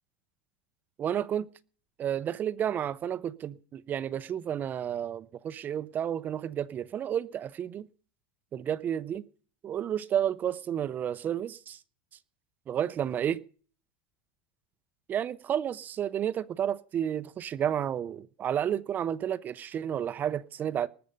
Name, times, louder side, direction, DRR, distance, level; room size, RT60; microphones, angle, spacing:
voice 1, 1.0-1.5 2.0-7.9 8.5-9.2 9.6-11.8 12.7-13.4 15.1-20.9, right 9 dB, 30° right, 0.6 m, -31 dB
20.0 x 6.8 x 5.1 m
supercardioid pair, 130°, 6 cm